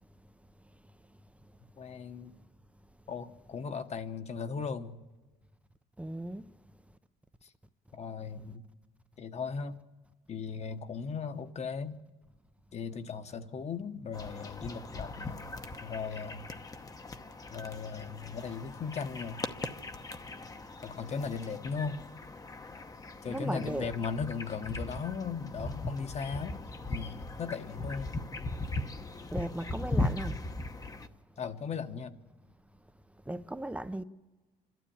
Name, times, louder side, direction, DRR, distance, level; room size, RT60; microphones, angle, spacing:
voice 1, 1.8-2.3 3.1-4.9 7.9-8.6 9.2-9.8 10.3-12.0 12.7-15.4 15.8-16.4 17.5-19.4 20.8-22.0 23.2-26.6 26.9-28.1 31.4-32.1, left 5 dB, 40° left, 1.2 m, -37 dB
voice 2, 6.0-6.5 23.3-23.9 29.3-30.4 33.3-34.0, right 1 dB, 5° right, 0.6 m, -36 dB
sound 1, 14.1-31.1, left 2 dB, 20° left, 0.9 m, -39 dB
26.5 x 12.5 x 8.7 m
cardioid pair, 110°, 17 cm